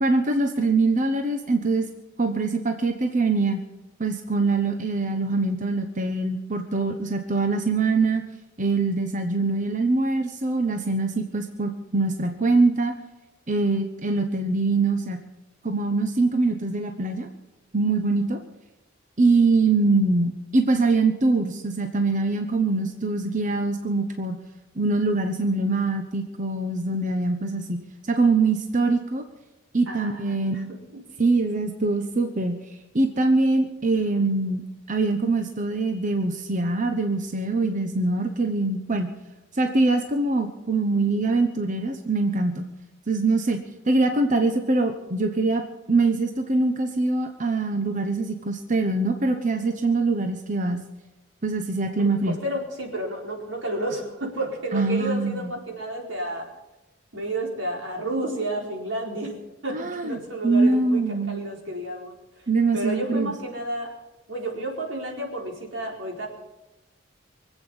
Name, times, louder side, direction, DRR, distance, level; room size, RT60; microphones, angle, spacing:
voice 1, 0.0-1.9 2.2-3.6 4.0-8.2 8.6-12.9 13.5-15.2 15.6-17.3 17.7-18.4 19.2-24.4 24.8-29.2 29.7-30.7 31.2-32.6 32.9-34.6 34.9-39.1 39.5-42.7 43.1-43.6 43.9-45.6 45.9-50.8 51.4-52.4 54.7-55.5 59.7-61.4 62.5-63.3, right 3 dB, 40° right, 6 dB, 1.0 m, -23 dB
voice 2, 29.9-30.6 52.0-56.5 57.1-59.4 59.6-62.1 62.7-63.9 64.3-66.3, right 1 dB, 85° right, -1 dB, 4.3 m, -31 dB
24.0 x 8.2 x 7.1 m, 1.0 s
head